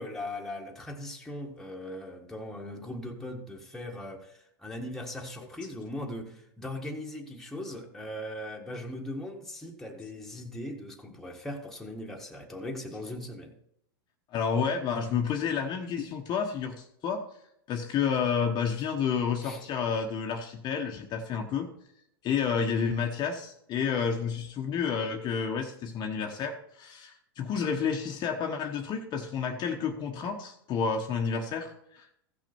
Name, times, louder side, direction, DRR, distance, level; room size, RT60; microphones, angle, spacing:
voice 1, 0.0-13.5 19.4-19.6, left 1 dB, 5° left, 1.7 m, -39 dB
voice 2, 14.3-17.2 17.7-21.7 22.2-32.1, left 6 dB, 35° left, 1.1 m, -30 dB
15.5 x 6.1 x 4.5 m
hypercardioid pair, 120°, 13 cm